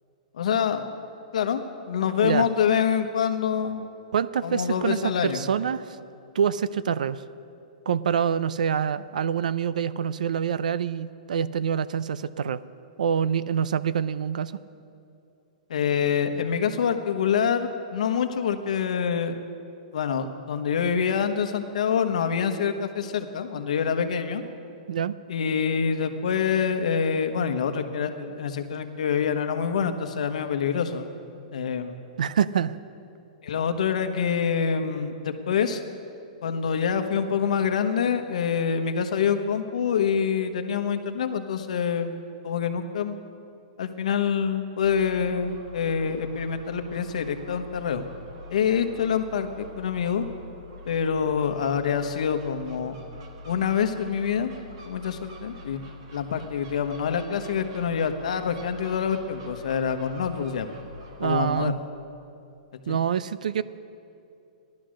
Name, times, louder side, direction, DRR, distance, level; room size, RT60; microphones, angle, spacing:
voice 1, 0.3-0.8 1.3-3.8 4.4-5.4 15.7-19.4 19.9-24.4 25.3-31.1 31.5-32.0 33.4-35.8 36.4-42.1 42.4-43.1 43.8-48.1 48.5-50.3 50.8-52.9 53.4-54.5 54.8-55.8 56.1-60.7 61.2-61.7 62.9-63.0, left 7 dB, 60° left, 7 dB, 1.1 m, -26 dB
voice 2, 4.1-6.0 6.3-7.2 7.9-12.6 13.0-14.5 24.9-25.2 32.2-32.8 61.2-61.8 62.9-63.6, right 8 dB, 80° right, 16 dB, 0.5 m, -26 dB
Gull seagull, 44.8-61.7, left 1 dB, 45° right, 1.7 m, -45 dB
16.5 x 12.0 x 6.4 m, 2.6 s
hypercardioid pair, 180°, 4 cm